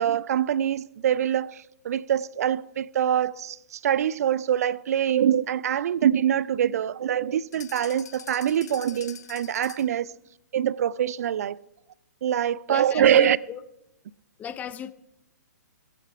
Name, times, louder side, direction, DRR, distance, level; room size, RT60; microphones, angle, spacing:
voice 1, 0.0-10.1 10.5-11.6 12.2-13.4, right 10 dB, 60° right, 0.3 m, -24 dB
sound 1, 7.5-10.0, left 7 dB, 65° left, 0.9 m, -44 dB
voice 2, 12.7-13.6 14.4-14.9, left 9 dB, 15° left, 0.4 m, -36 dB
18.5 x 8.4 x 4.7 m
hypercardioid pair, 125°, 10 cm